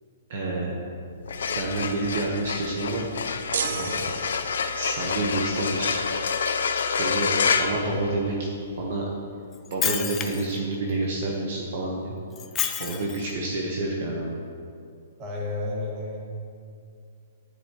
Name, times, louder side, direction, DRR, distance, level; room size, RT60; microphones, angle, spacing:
voice 1, 0.3-0.7 1.6-3.1 3.7-4.0 4.7-5.9 7.0-7.3 7.6-8.4 8.8-9.0 9.7-12.1 12.8-14.4, right 2 dB, 45° right, -2 dB, 1.2 m, -28 dB
sound 1, 1.2-8.6, left 5 dB, 85° left, 0.6 m, -28 dB
sound 2, 3.5-4.9, right 7 dB, 65° right, 0.5 m, -32 dB
voice 2, 7.7-8.1 15.2-16.3, left 2 dB, 20° right, -4 dB, 2.0 m, -32 dB
Shatter, 9.5-10.6 12.4-13.3, left 9 dB, 15° left, 0.4 m, -29 dB
12.0 x 9.5 x 3.1 m, 2.3 s
hypercardioid pair, 175°, 0 cm